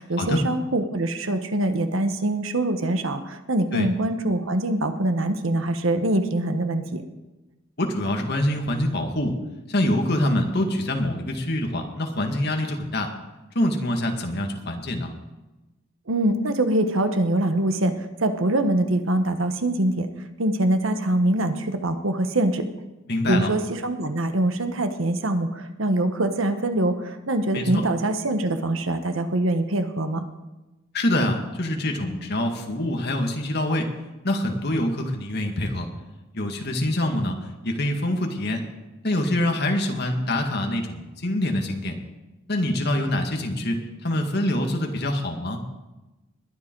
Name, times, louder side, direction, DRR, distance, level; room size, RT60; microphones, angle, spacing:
voice 1, 0.0-7.0 16.1-17.9 18.2-20.1 20.4-22.7 23.3-30.2, right 1 dB, 80° right, 8 dB, 1.2 m, -24 dB
voice 2, 7.8-9.3 9.7-13.1 13.6-15.1 23.1-23.5 27.5-27.8 30.9-33.9 34.2-35.9 36.3-37.4 37.6-38.6 39.0-41.9 42.5-45.6, left 1 dB, 50° left, 3 dB, 2.0 m, -25 dB
20.5 x 10.5 x 4.7 m, 1.1 s
head